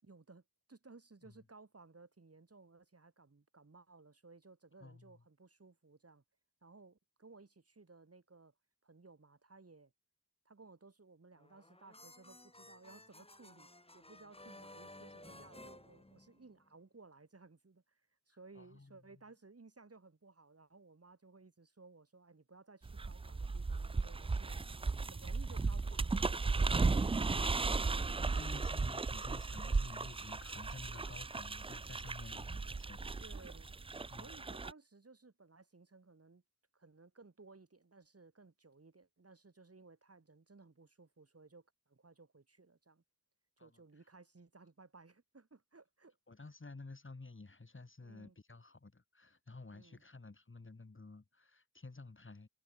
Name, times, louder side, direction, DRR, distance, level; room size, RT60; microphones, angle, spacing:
voice 1, 0.0-0.4 0.7-6.2 6.6-8.5 8.8-9.9 10.4-27.7 33.2-33.7 34.0-36.4 36.7-43.0 43.6-46.5 48.0-48.4 49.7-50.0, right 3 dB, 45° right, 5.0 m, -59 dB
voice 2, 4.8-5.2 18.6-19.0 27.5-33.3 34.1-34.3 43.6-43.7 46.3-52.5, left 3 dB, 40° left, 3.7 m, -52 dB
sound 1, 11.4-16.7, left 1 dB, 20° left, 2.6 m, -56 dB
sound 2, 22.8-34.7, right 3 dB, 20° right, 0.3 m, -36 dB
wide cardioid pair, 90°, 32 cm